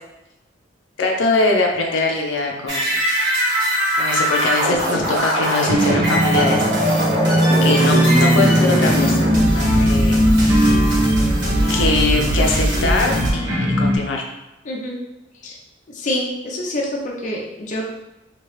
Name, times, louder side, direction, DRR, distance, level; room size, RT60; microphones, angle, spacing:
voice 1, 1.0-3.0 4.0-6.7 7.6-10.3 11.7-14.2, left 3 dB, 90° left, 1 dB, 0.6 m, -22 dB
sound 1, 2.7-13.3, equal, 60° right, 1.4 m, -21 dB
sound 2, 5.7-14.0, equal, 85° right, 0.9 m, -19 dB
voice 2, 14.6-15.0 15.4-15.6 15.9-17.8, left 1 dB, 40° left, -1 dB, 0.5 m, -26 dB
3.0 x 2.9 x 3.1 m, 0.95 s
head